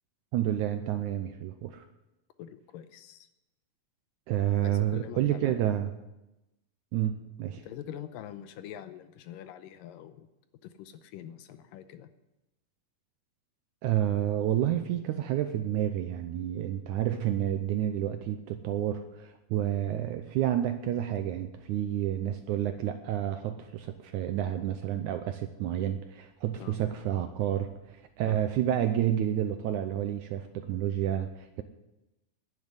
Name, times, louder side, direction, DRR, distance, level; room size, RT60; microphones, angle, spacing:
voice 1, 0.3-1.8 4.3-5.9 6.9-7.7 13.8-31.6, right 11 dB, 80° right, 8 dB, 1.8 m, -30 dB
voice 2, 2.4-3.3 4.6-5.6 7.6-10.3 10.6-12.1 26.6-26.8 28.2-28.4, left 10 dB, 80° left, 11 dB, 2.3 m, -44 dB
11.0 x 10.0 x 9.6 m, 0.97 s
omnidirectional pair, 4.1 m